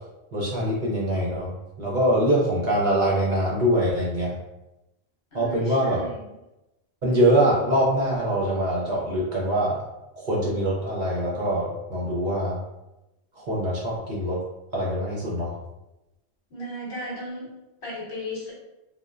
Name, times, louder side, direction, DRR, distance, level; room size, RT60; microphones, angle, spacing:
voice 1, 0.3-4.4 5.3-6.0 7.0-9.8 10.2-12.6 13.3-14.4 14.7-15.6, right 1 dB, 55° right, -5 dB, 0.7 m, -24 dB
voice 2, 5.3-6.2 16.5-17.5 17.8-18.5, left 1 dB, 60° left, -4 dB, 1.0 m, -35 dB
3.0 x 2.1 x 2.4 m, 0.96 s
omnidirectional pair, 1.1 m